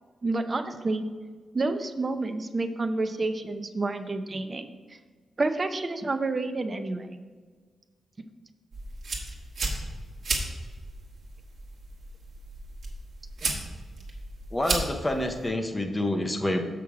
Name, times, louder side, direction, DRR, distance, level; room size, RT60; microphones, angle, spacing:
voice 1, 0.2-1.0 1.5-4.7 5.4-7.1 13.4-13.5, right 3 dB, 25° right, 7 dB, 0.6 m, -29 dB
sound 1, 8.7-15.5, right 2 dB, 50° right, 1.5 m, -34 dB
voice 2, 14.5-16.6, left 1 dB, 10° left, 3 dB, 0.7 m, -27 dB
7.1 x 6.2 x 4.8 m, 1.5 s
wide cardioid pair, 175°, 0 cm